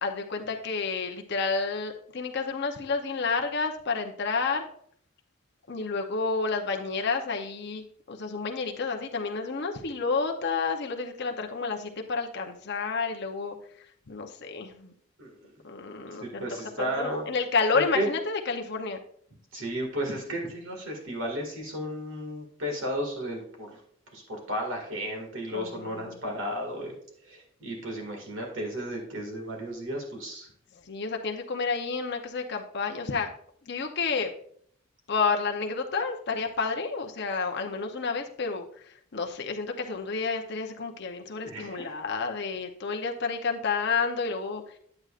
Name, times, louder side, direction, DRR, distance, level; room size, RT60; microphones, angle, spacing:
voice 1, 0.0-4.7 5.7-13.6 14.1-14.9 15.6-16.5 16.8-19.0 25.5-26.1 30.9-33.3 33.6-34.3 35.1-44.6, left 4 dB, 55° left, 3 dB, 0.7 m, -30 dB
voice 2, 15.2-15.5 16.2-17.3 17.7-18.1 19.5-23.8 24.1-27.0 27.2-30.5 41.4-41.9, equal, 65° right, 0 dB, 2.1 m, -33 dB
9.6 x 7.7 x 2.5 m, 0.63 s
head